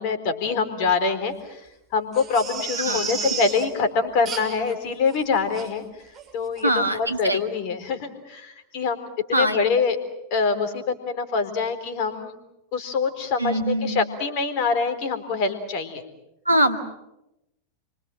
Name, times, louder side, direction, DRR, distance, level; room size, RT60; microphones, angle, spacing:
voice 1, 0.0-1.6 1.9-5.8 6.3-10.0 10.3-12.4 12.7-16.0, left 5 dB, 45° left, 9 dB, 3.8 m, -25 dB
Crying sobbing, 2.1-3.6 4.2-4.7 5.1-5.2 5.5-5.7 6.1-6.3 6.6-6.7, right 5 dB, 30° right, 6.6 m, -32 dB
voice 2, 6.6-7.4 9.3-9.6 13.4-14.0 16.5-16.8, right 1 dB, 85° right, 5 dB, 2.3 m, -22 dB
29.0 x 25.0 x 7.7 m, 0.89 s
figure-of-eight pair, 90°, 0 cm